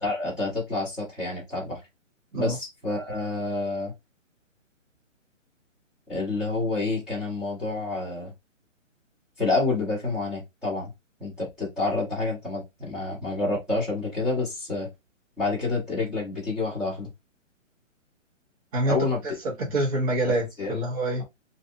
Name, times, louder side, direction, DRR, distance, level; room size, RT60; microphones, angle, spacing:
voice 1, 0.0-1.8 2.3-3.9 6.1-8.3 9.4-10.9 11.2-14.9 15.4-17.1 18.9-19.2 20.2-20.3 20.6-20.8, left 3 dB, ahead, 0.9 m, -28 dB
voice 2, 19.2-21.2, right 1 dB, 30° right, 1.3 m, -26 dB
3.1 x 2.7 x 2.6 m
hypercardioid pair, 165°, 39 cm